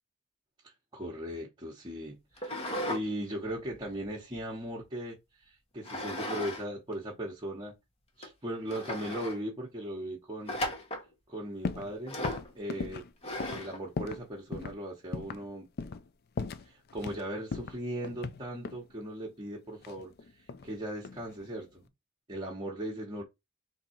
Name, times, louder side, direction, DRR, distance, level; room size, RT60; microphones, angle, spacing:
voice 1, 0.9-5.2 5.4-7.7 8.2-10.5 11.3-12.2 12.5-13.0 13.4-15.7 16.6-21.9 22.3-23.2, right 1 dB, 20° right, 1.0 m, -38 dB
sound 1, 2.4-3.0 3.4-4.8 5.8-6.6 6.9-7.0 7.7-7.8 8.2-8.3 8.7-9.4 10.5-11.1 12.1-12.5 13.2-13.8, left 1 dB, 30° left, 1.1 m, -36 dB
sound 2, 11.6-11.9 12.2-14.3 14.5-14.8 15.1-15.5 15.8-16.1 16.4-17.2 17.5-18.9 19.8-20.7 21.0-21.5, left 4 dB, 50° left, 0.4 m, -38 dB
3.7 x 2.7 x 4.3 m
head